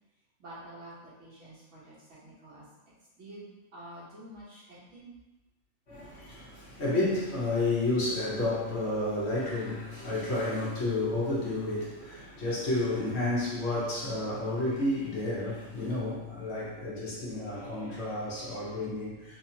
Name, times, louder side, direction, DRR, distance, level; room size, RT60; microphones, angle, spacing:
voice 1, 0.4-1.9 2.2-2.6 3.2-5.1, right 1 dB, 75° right, -8 dB, 1.5 m, -48 dB
voice 2, 5.9-19.4, left 2 dB, 60° left, -7 dB, 1.3 m, -31 dB
3.6 x 3.0 x 2.8 m, 1.1 s
omnidirectional pair, 1.3 m